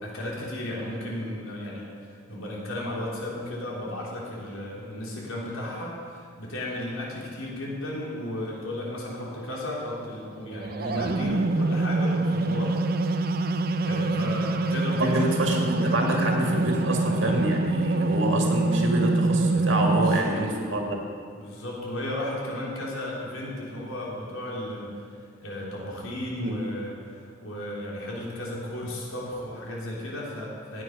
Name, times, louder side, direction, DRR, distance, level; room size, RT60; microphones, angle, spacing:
voice 1, 0.0-12.7 13.8-15.3 20.0-20.4 21.3-25.0 25.4-30.8, left 1 dB, 85° left, -4 dB, 3.6 m, -34 dB
sound 1, 10.5-20.2, right 2 dB, 45° right, 0.5 m, -25 dB
voice 2, 15.0-21.1 26.4-26.6, right 1 dB, 65° right, 1 dB, 2.0 m, -27 dB
16.0 x 9.6 x 5.6 m, 2.2 s
head